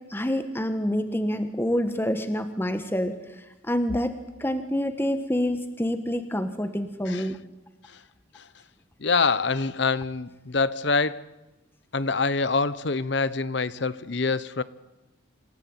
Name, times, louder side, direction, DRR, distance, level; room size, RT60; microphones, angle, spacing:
voice 1, 0.1-3.1 3.7-4.1 4.4-7.4, equal, 10° left, 1.3 m, -27 dB
voice 2, 9.0-11.3 11.9-14.6, left 4 dB, 60° left, 0.9 m, -25 dB
27.5 x 16.0 x 9.0 m
head